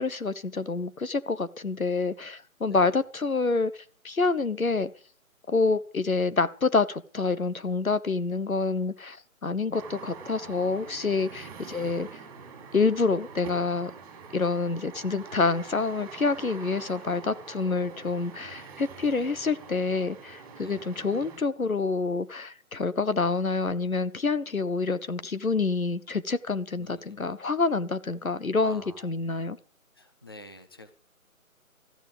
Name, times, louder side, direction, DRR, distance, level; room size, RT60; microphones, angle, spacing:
voice 1, 0.0-3.7 4.0-4.9 5.5-12.1 12.7-13.9 14.3-29.6, left 4 dB, 75° left, 1.3 m, -27 dB
sound 1, 9.7-21.4, right 5 dB, 15° right, 3.8 m, -45 dB
voice 2, 20.6-20.9 26.7-27.3 28.6-29.1 29.9-30.9, left 1 dB, 15° left, 0.7 m, -49 dB
14.0 x 14.0 x 5.1 m
figure-of-eight pair, 150°, 42 cm